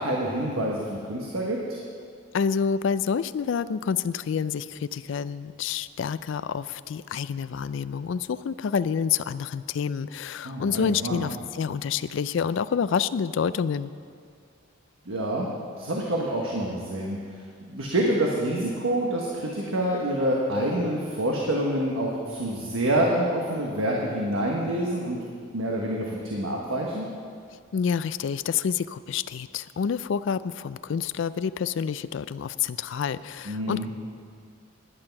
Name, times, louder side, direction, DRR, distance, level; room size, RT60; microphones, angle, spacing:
voice 1, 0.0-1.8 10.4-11.3 15.0-15.5 15.8-17.2 17.6-25.2 25.5-27.1 33.4-33.9, right 1 dB, 80° right, -2 dB, 1.3 m, -27 dB
voice 2, 2.3-13.9 27.7-33.9, left 6 dB, 65° left, 15 dB, 0.3 m, -28 dB
11.0 x 9.7 x 5.9 m, 2.2 s
head